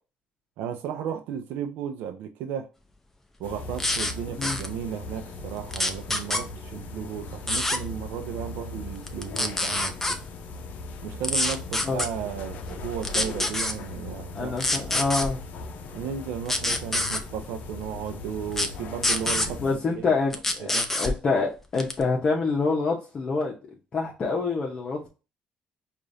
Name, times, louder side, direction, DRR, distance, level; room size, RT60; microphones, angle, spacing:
voice 1, 0.6-2.7 3.4-10.2 11.0-14.6 15.9-19.6 19.9-20.1 20.6-20.9, right 8 dB, 90° right, 0.4 m, -34 dB
sound 1, 3.4-19.8, left 3 dB, 65° left, 0.6 m, -39 dB
sound 2, 3.8-4.1 4.4-4.7 5.7-6.4 7.5-7.8 9.1-10.2 11.2-12.1 13.0-13.7 14.6-15.3 16.5-17.2 18.5-18.7 19.0-19.5 20.3-21.1 21.8-22.0, left 2 dB, 10° left, 0.6 m, -25 dB
voice 2, 14.3-15.4 19.6-23.5 23.9-25.1, left 4 dB, 35° left, 0.8 m, -26 dB
4.9 x 2.5 x 2.7 m
cardioid pair, 120°, 3 cm